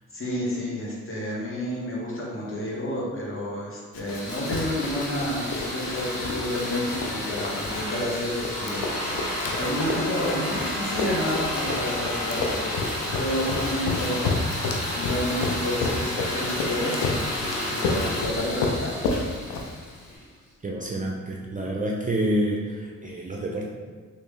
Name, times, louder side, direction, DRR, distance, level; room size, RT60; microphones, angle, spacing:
voice 1, 0.1-8.8 9.2-12.7 13.0-14.2 14.6-17.3 17.7-18.9, left 1 dB, 40° left, -5 dB, 1.5 m, -30 dB
Run, 3.9-20.1, left 3 dB, 80° left, 0.6 m, -31 dB
sound 1, 4.0-20.2, left 1 dB, 55° left, 1.2 m, -31 dB
voice 2, 20.6-23.7, right 1 dB, 25° right, -2 dB, 0.6 m, -28 dB
3.2 x 3.0 x 3.2 m, 1.5 s
supercardioid pair, 50°, 34 cm